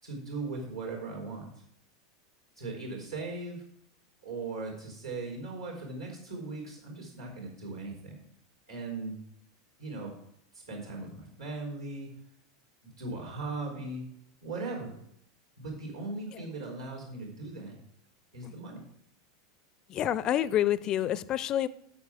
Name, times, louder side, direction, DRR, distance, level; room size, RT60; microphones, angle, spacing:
voice 1, 0.0-1.5 2.6-3.6 4.2-8.2 8.7-9.2 9.8-10.1 10.5-12.1 12.8-14.0 14.4-14.9 15.6-17.8 18.3-18.8, right 3 dB, 80° right, 4.4 m, -38 dB
voice 2, 19.9-21.7, left 11 dB, 35° left, 0.4 m, -28 dB
9.3 x 7.3 x 4.9 m
figure-of-eight pair, 85°, 2 cm